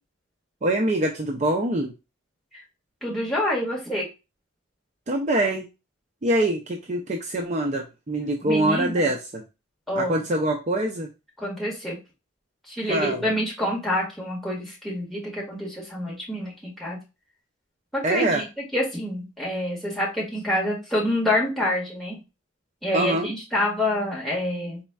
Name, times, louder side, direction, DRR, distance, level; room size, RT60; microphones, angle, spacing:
voice 1, 0.6-1.9 5.1-5.7 6.2-9.4 10.0-11.1 12.9-13.2 18.0-18.4 22.9-23.3, right 1 dB, 35° right, 2 dB, 0.4 m, -24 dB
voice 2, 3.0-4.1 8.4-9.0 9.9-10.1 11.4-12.0 12.7-17.0 17.9-18.4 18.7-22.2 22.8-24.8, left 1 dB, ahead, -5 dB, 1.7 m, -27 dB
4.2 x 4.1 x 2.3 m, 0.27 s
head